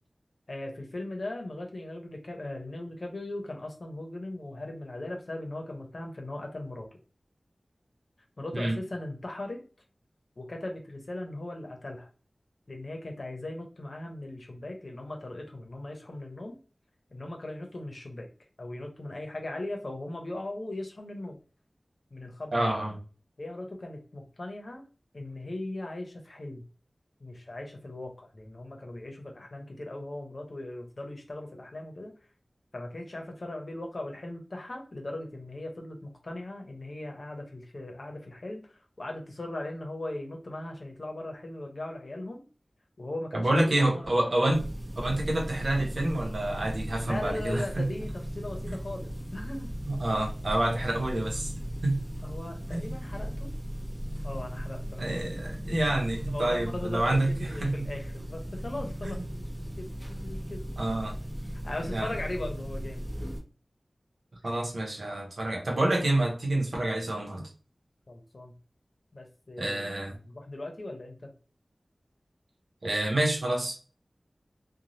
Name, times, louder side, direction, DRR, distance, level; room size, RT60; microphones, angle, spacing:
voice 1, 0.5-6.9 8.4-9.6 10.4-12.1 12.7-16.5 17.1-18.3 18.6-21.4 22.1-22.8 23.4-24.8 25.1-26.7 27.2-32.1 32.7-42.4 43.0-44.1 47.0-49.7 52.2-53.5 54.2-55.2 56.1-60.6 61.4-63.1 68.1-68.5 69.1-69.9 70.2-71.3, left 1 dB, 60° left, 0.8 m, -39 dB
voice 2, 22.5-23.0 43.3-44.7 45.0-47.9 49.9-52.0 52.7-52.9 55.0-57.9 59.0-59.2 60.8-61.2 61.9-62.1 64.4-67.5 69.6-70.2 72.8-73.8, right 1 dB, 75° right, 0.8 m, -28 dB
sound 1, 44.5-63.4, equal, 10° right, 1.1 m, -37 dB
3.1 x 2.2 x 2.7 m
wide cardioid pair, 55°, 0 cm